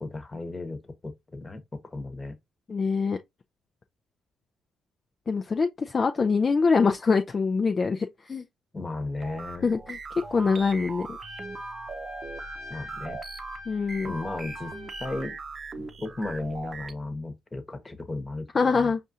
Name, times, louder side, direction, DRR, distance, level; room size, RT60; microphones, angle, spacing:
voice 1, 0.0-2.4 8.7-9.7 12.7-13.2 14.0-14.7 15.0-15.4 15.8-18.9, left 2 dB, 25° left, 1.1 m, -35 dB
voice 2, 2.7-3.2 5.3-8.4 9.6-10.0 10.3-11.2 13.7-14.1 18.5-19.0, left 4 dB, 40° left, 0.4 m, -24 dB
sound 1, 9.2-16.9, right 3 dB, 45° right, 0.7 m, -39 dB
Trumpet, 11.2-15.4, left 3 dB, 70° left, 1.3 m, -44 dB
5.2 x 2.5 x 2.7 m
supercardioid pair, 55°, 0 cm